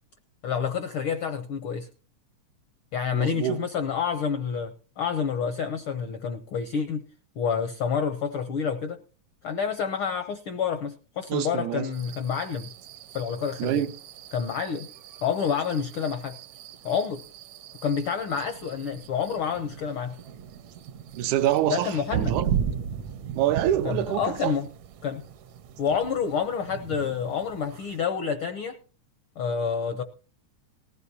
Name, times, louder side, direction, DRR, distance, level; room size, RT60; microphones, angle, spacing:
voice 1, 0.4-1.9 2.9-7.0 7.4-9.0 9.4-12.7 13.1-13.8 14.3-14.9 15.2-16.4 16.8-17.2 17.8-20.2 21.7-22.3 23.8-24.7 25.0-25.2 25.8-28.8 29.4-30.0, left 6 dB, 75° left, 1.2 m, -28 dB
voice 2, 3.1-3.6 11.3-11.9 13.6-13.9 21.2-22.5 23.4-24.5, right 12 dB, 90° right, 2.3 m, -26 dB
sound 1, 11.9-28.0, right 8 dB, 75° right, 2.0 m, -37 dB
19.0 x 15.5 x 2.7 m
omnidirectional pair, 3.4 m